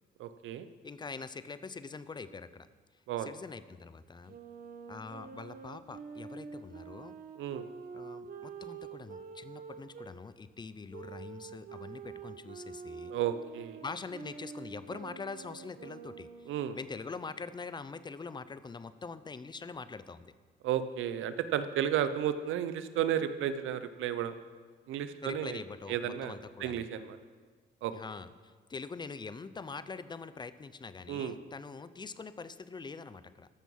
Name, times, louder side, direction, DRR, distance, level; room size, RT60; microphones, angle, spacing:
voice 1, 0.2-0.7 3.1-3.3 7.4-7.6 13.1-13.8 16.5-16.8 20.6-24.3 24.9-25.6 25.9-26.4 26.6-27.2 27.8-27.9 31.1-31.4, right 10 dB, 85° right, 12 dB, 0.7 m, -33 dB
voice 2, 0.8-2.7 3.2-4.4 4.9-7.1 7.9-13.1 13.8-20.3 25.2-26.9 27.9-33.5, left 4 dB, 20° left, 14 dB, 0.5 m, -44 dB
Wind instrument woodwind instrument, 4.3-10.1 10.9-16.7, right 5 dB, 45° right, 1.0 m, -47 dB
13.5 x 6.1 x 5.4 m, 1.5 s
cardioid pair, 90°, 20 cm